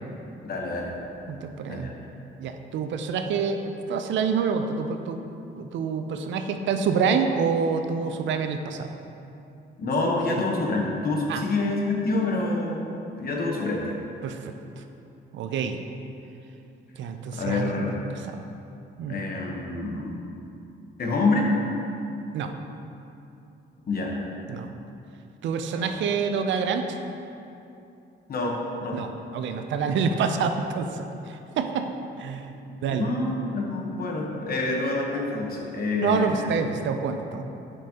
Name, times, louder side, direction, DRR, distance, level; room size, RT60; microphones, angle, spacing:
voice 1, 0.4-1.0 1.7-1.9 9.8-12.8 13.2-13.9 17.3-18.0 19.1-20.2 21.0-21.5 23.9-24.2 25.8-25.9 28.3-29.0 32.9-36.5, left 2 dB, 50° left, -1 dB, 1.1 m, -27 dB
voice 2, 1.3-1.9 2.4-5.2 5.6-8.9 10.3-10.4 11.3-11.4 14.2-14.5 15.3-15.8 17.0-17.9 18.3-18.4 19.0-19.2 22.3-22.5 24.5-24.7 25.4-27.0 28.9-31.9 32.2-32.5 32.8-33.1 36.0-37.4, right 6 dB, 70° right, 7 dB, 0.5 m, -27 dB
7.1 x 5.3 x 2.9 m, 2.8 s
cardioid pair, 90°, 20 cm